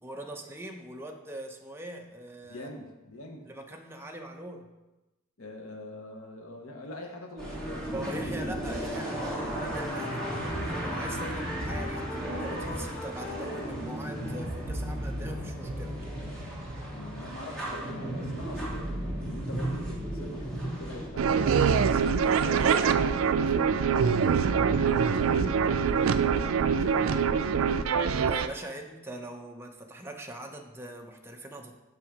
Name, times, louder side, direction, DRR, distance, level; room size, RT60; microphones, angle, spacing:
voice 1, 0.0-2.7 3.5-4.7 7.9-16.0 28.1-31.8, right 1 dB, 10° right, 2 dB, 0.7 m, -42 dB
voice 2, 2.5-3.5 5.4-7.9 16.9-28.3, left 1 dB, 80° left, 2 dB, 1.1 m, -43 dB
sound 1, 7.4-21.1, right 1 dB, 5° left, 2.6 m, -34 dB
sound 2, 9.2-14.1, left 3 dB, 50° left, 0.9 m, -41 dB
sound 3, 21.2-28.5, right 6 dB, 75° right, 0.4 m, -24 dB
6.1 x 5.7 x 5.1 m, 1.0 s
head